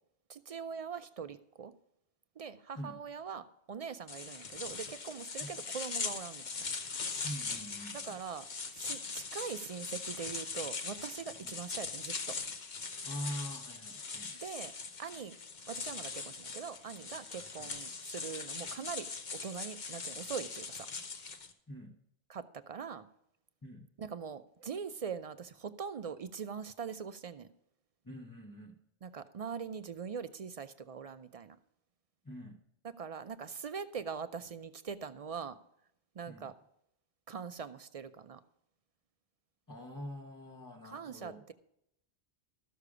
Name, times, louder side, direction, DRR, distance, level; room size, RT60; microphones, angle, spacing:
voice 1, 0.3-1.7 2.4-6.7 7.9-8.5 8.7-12.4 14.4-14.7 15.0-15.4 15.7-20.9 22.3-23.1 24.0-27.5 29.0-31.6 32.8-35.6 36.2-36.5 37.3-38.4 40.8-41.5, right 6 dB, 55° right, 12 dB, 0.4 m, -42 dB
sound 1, 4.1-21.5, left 4 dB, 45° left, 0.9 m, -41 dB
voice 2, 7.2-8.1 11.4-11.5 13.0-14.3 21.7-21.9 23.6-23.9 28.0-28.8 32.2-32.6 36.3-36.5 39.7-41.4, equal, 20° left, -1 dB, 1.0 m, -44 dB
13.5 x 6.7 x 4.9 m, 0.77 s
omnidirectional pair, 1.1 m